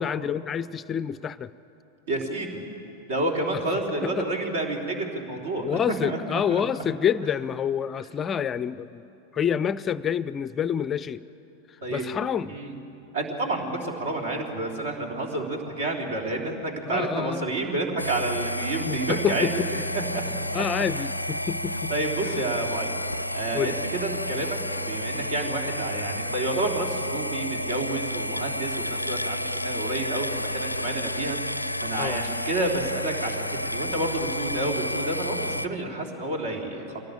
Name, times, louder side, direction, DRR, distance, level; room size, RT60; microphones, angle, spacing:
voice 1, 0.0-1.5 3.5-3.6 4.0-4.2 5.6-9.0 9.3-11.2 11.9-12.6 16.9-17.5 18.7-19.5 20.5-21.9 22.2-22.4 23.5-23.8 32.0-32.2, left 8 dB, 25° left, 17 dB, 0.4 m, -28 dB
voice 2, 2.1-2.6 3.1-6.6 11.8-12.1 12.5-12.8 13.1-19.6 19.9-20.6 20.9-21.1 21.9-22.9 23.3-23.7 24.0-37.0, right 2 dB, 60° right, 2 dB, 3.3 m, -30 dB
sound 1, 18.0-35.7, left 1 dB, 90° left, 0.4 m, -31 dB
24.0 x 17.5 x 8.7 m, 2.9 s
figure-of-eight pair, 90°, 0 cm